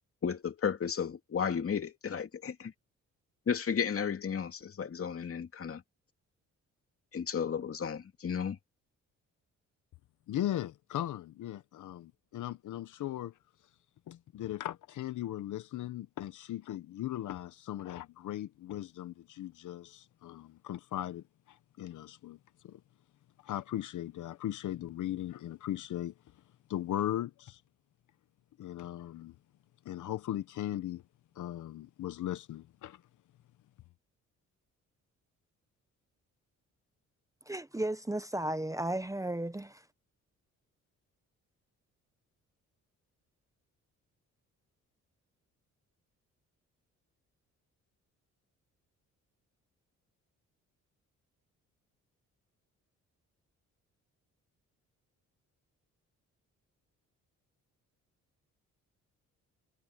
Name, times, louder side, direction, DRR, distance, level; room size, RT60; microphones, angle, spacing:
voice 1, 0.2-2.7 3.5-5.8 7.1-8.6, left 7 dB, 45° left, 2.6 m, -33 dB
voice 2, 10.3-13.3 14.1-22.4 22.6-22.8 23.4-26.1 26.7-27.6 28.6-29.3 29.8-31.0 31.3-33.0, left 12 dB, 70° left, 0.9 m, -38 dB
voice 3, 37.5-39.8, right 1 dB, 10° right, 0.9 m, -34 dB
cardioid pair, 85°, 31 cm